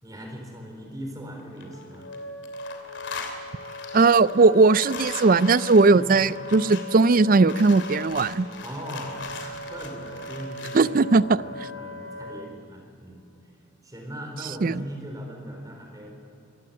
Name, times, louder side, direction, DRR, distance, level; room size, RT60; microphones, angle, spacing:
voice 1, 0.0-2.1 5.9-6.3 8.6-13.2 13.8-16.1, equal, 20° right, 2 dB, 4.2 m, -39 dB
sound 1, 1.4-2.2 2.4-10.9, left 4 dB, 65° left, 2.9 m, -39 dB
Wind instrument woodwind instrument, 1.6-12.5, left 2 dB, 90° left, 1.5 m, -39 dB
voice 2, 3.9-8.5 10.7-11.4 14.6-14.7, right 3 dB, 45° right, 19 dB, 0.4 m, -18 dB
25.5 x 15.5 x 8.7 m, 2.7 s
head